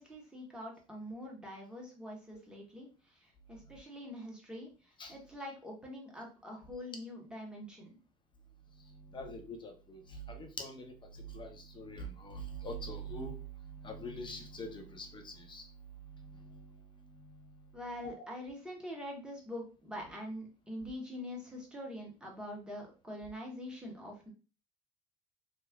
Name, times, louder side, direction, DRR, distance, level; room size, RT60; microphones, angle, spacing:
voice 1, 0.0-7.9 17.7-24.3, left 1 dB, 5° right, 1.1 m, -44 dB
voice 2, 8.8-15.7 16.0-17.7 18.0-18.3, right 1 dB, 25° left, 0.7 m, -45 dB
3.1 x 2.0 x 2.4 m
hypercardioid pair, 65°, 19 cm